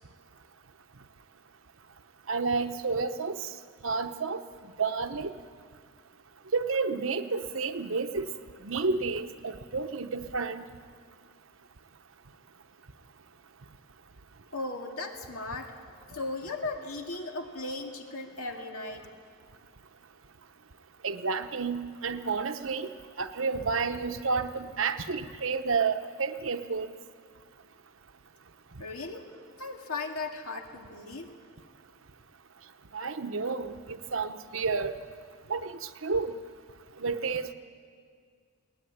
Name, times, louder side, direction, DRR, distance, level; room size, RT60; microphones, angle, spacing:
voice 1, 2.3-3.5 3.8-4.4 4.8-5.3 6.5-8.3 8.6-10.6 21.0-22.9 23.2-26.9 32.9-34.9 35.5-35.7 36.0-36.3 37.0-37.5, right 4 dB, 65° right, 9 dB, 1.0 m, -30 dB
voice 2, 14.5-15.8 16.1-19.1 28.8-29.3 29.6-31.3, left 3 dB, 90° left, 3 dB, 2.3 m, -37 dB
21.5 x 18.5 x 9.6 m, 2.1 s
head